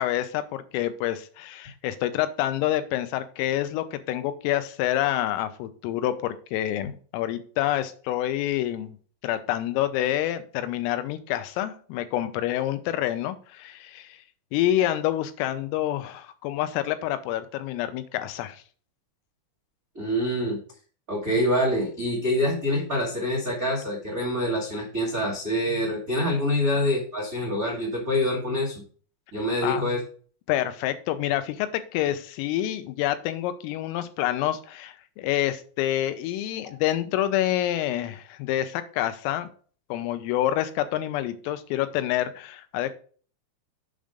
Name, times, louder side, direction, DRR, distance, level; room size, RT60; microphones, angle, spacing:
voice 1, 0.0-9.0 9.2-14.2 14.5-18.6 29.6-29.8 30.5-39.5 39.9-43.0, left 13 dB, 90° left, 10 dB, 3.4 m, -27 dB
voice 2, 19.9-20.6 21.1-28.8 29.3-30.0, left 1 dB, 75° right, -4 dB, 0.8 m, -26 dB
7.8 x 5.3 x 5.0 m, 0.42 s
omnidirectional pair, 5.9 m